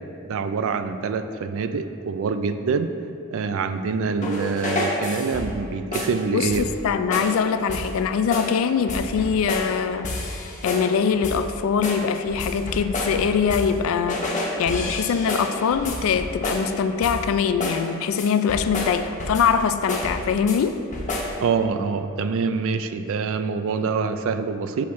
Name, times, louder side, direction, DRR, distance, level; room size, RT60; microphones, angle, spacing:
voice 1, 0.3-2.9 3.3-6.6 21.4-24.8, right 5 dB, 65° right, 10 dB, 0.3 m, -25 dB
sound 1, 4.2-5.6 5.9-6.2 6.5-6.8 7.1-7.4 7.7-8.0 8.3-8.6 8.9-9.8 10.0-10.9 11.2-11.5 11.8-13.8 14.1-16.7 17.0-17.3 17.6-17.9 18.2-19.6 19.9-20.6 20.9-21.4, left 1 dB, 35° left, 0.7 m, -29 dB
voice 2, 6.3-20.8, left 6 dB, 65° left, 10 dB, 0.3 m, -23 dB
6.3 x 3.1 x 5.6 m, 2.6 s
head